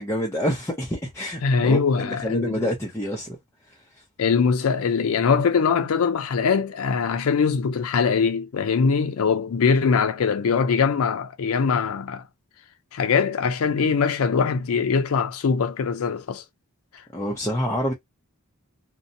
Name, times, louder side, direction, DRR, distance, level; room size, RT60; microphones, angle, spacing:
voice 1, 0.0-3.4 3.7-3.8 17.1-17.9, equal, 10° left, 0.5 m, -27 dB
voice 2, 1.4-2.6 4.2-12.2 12.9-16.4, left 5 dB, 70° left, 0.4 m, -22 dB
2.7 x 2.1 x 2.6 m
head